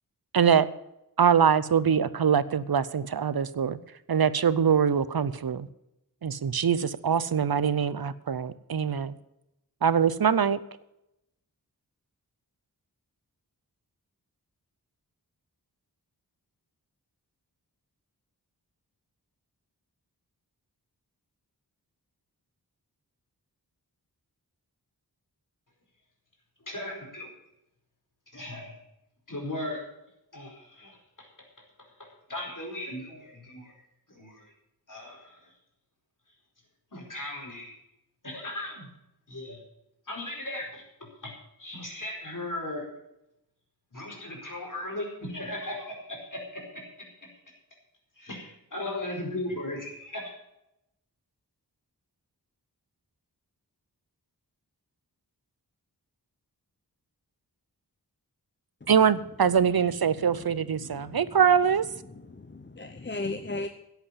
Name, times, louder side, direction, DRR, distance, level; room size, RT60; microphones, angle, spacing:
voice 1, 0.3-0.7 1.2-3.8 4.1-5.7 6.2-9.2 9.8-10.6 58.9-61.9, right 7 dB, 65° right, 16 dB, 0.7 m, -23 dB
voice 2, 26.6-27.3 28.3-28.8 29.3-29.8 30.3-31.3 32.0-33.7 34.1-34.5 34.9-35.5 36.9-37.8 38.2-38.9 39.3-39.6 40.1-42.9 43.9-47.3 48.2-50.3, left 1 dB, 50° left, 0 dB, 4.7 m, -37 dB
voice 3, 60.1-61.3 62.1-63.7, left 2 dB, 30° left, 8 dB, 0.8 m, -37 dB
11.0 x 8.2 x 8.2 m, 0.86 s
wide cardioid pair, 45°, 39 cm